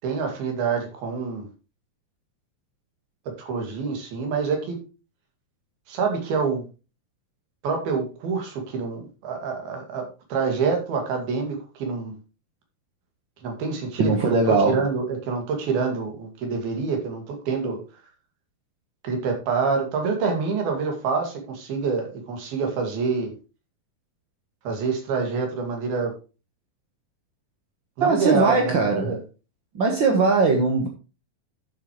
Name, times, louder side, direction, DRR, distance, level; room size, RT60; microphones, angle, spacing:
voice 1, 0.0-1.5 3.3-4.8 5.9-6.6 7.6-12.1 13.4-14.4 14.7-17.8 19.0-23.3 24.6-26.1 28.0-29.2, right 5 dB, 80° right, 4.2 m, -26 dB
voice 2, 14.0-14.8 28.0-29.2 29.7-30.9, right 4 dB, 60° right, 1.2 m, -20 dB
12.0 x 7.5 x 3.1 m
omnidirectional pair, 4.2 m